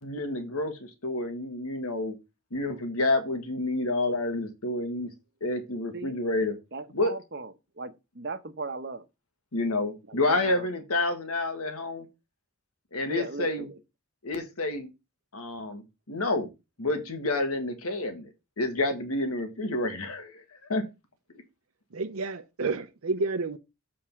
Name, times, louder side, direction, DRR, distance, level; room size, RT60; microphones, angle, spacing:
voice 1, 0.0-0.7 1.0-2.1 2.5-5.1 5.4-6.5 6.9-7.1 9.5-12.0 12.9-13.7 14.2-14.9 15.3-16.5 16.8-18.3 18.6-20.4 20.7-20.8, left 2 dB, 90° left, 1.5 m, -29 dB
voice 2, 6.7-9.0 10.1-10.7 13.0-13.8, right 3 dB, 50° right, 0.9 m, -38 dB
voice 3, 21.9-23.6, right 3 dB, 80° right, 0.7 m, -30 dB
7.7 x 3.7 x 5.8 m
head